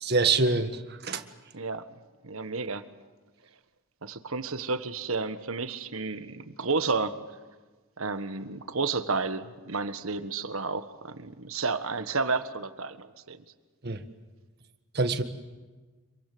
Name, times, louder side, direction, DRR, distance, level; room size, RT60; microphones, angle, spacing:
voice 1, 0.0-1.2 13.8-14.0 14.9-15.2, right 3 dB, 50° right, 8 dB, 1.7 m, -25 dB
voice 2, 1.5-1.9 2.2-2.8 4.0-7.2 8.0-13.4, right 4 dB, 80° right, 10 dB, 1.5 m, -31 dB
26.5 x 23.5 x 7.9 m, 1.3 s
head